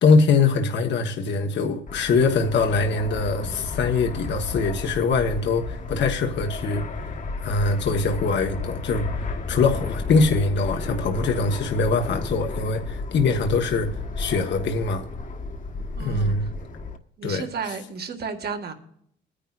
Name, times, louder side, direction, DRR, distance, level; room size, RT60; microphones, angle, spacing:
voice 1, 0.0-6.8 7.4-13.9 14.2-15.0 16.0-16.5 17.2-17.5, left 4 dB, 65° left, 1.4 m, -23 dB
Fixed-wing aircraft airplane, 1.9-17.0, left 3 dB, 40° left, 1.4 m, -33 dB
voice 2, 16.0-16.3 17.2-18.7, right 5 dB, 55° right, 1.9 m, -32 dB
21.0 x 10.0 x 2.5 m
cardioid pair, 90°, 20 cm